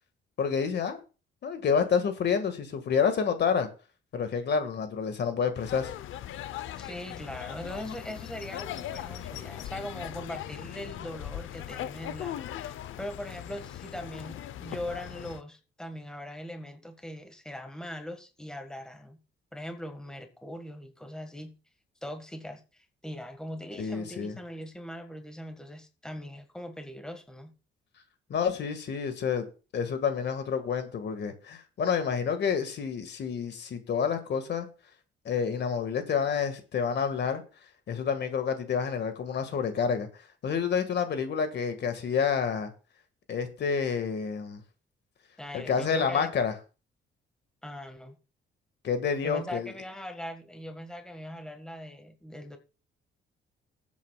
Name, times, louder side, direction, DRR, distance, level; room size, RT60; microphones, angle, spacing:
voice 1, 0.4-1.0 1.4-3.7 4.1-5.9 23.8-24.3 28.3-29.5 29.7-34.7 35.3-37.4 37.9-40.1 40.4-42.7 43.3-44.6 45.5-46.5 48.8-49.7, left 6 dB, 60° left, 1.8 m, -28 dB
sound 1, 5.6-15.4, left 12 dB, 80° left, 0.7 m, -39 dB
voice 2, 6.8-19.2 19.5-21.5 22.0-27.5 45.4-46.3 47.6-48.2 49.2-52.6, left 1 dB, 5° left, 1.6 m, -40 dB
20.0 x 8.3 x 2.4 m
cardioid pair, 90°, 20 cm